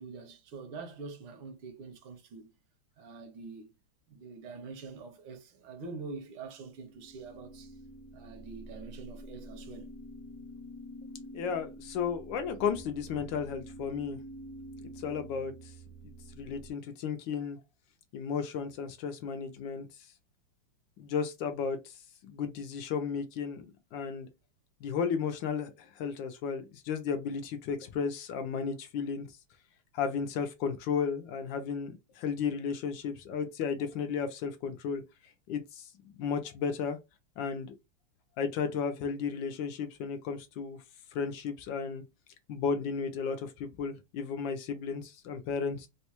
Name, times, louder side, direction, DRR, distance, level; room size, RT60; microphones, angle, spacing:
voice 1, 0.0-2.5 3.0-3.7 4.1-7.8 8.1-10.0, right 4 dB, 75° right, 1.6 m, -45 dB
sound 1, 6.6-16.7, right 1 dB, 55° left, 0.9 m, -47 dB
voice 2, 11.3-14.2 15.0-15.5 16.4-17.6 18.1-19.9 21.0-21.9 22.2-23.6 23.9-24.3 24.8-29.3 29.9-35.0 35.5-35.9 36.2-37.0 37.4-37.7 38.4-40.8 41.1-42.0 42.5-45.9, left 6 dB, 75° left, 1.1 m, -34 dB
4.1 x 2.1 x 2.9 m
omnidirectional pair, 2.4 m